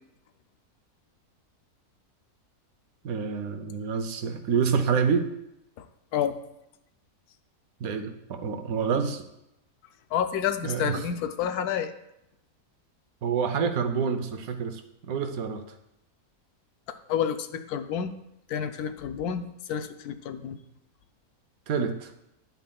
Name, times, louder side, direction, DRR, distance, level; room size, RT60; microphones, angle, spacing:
voice 1, 3.0-5.3 7.8-9.3 10.6-11.0 13.2-15.6 21.7-22.1, right 6 dB, 70° right, 8 dB, 1.1 m, -27 dB
voice 2, 10.1-11.9 17.1-18.1 18.5-20.6, left 8 dB, 80° left, 9 dB, 1.1 m, -29 dB
10.0 x 8.1 x 2.3 m, 0.84 s
omnidirectional pair, 1.6 m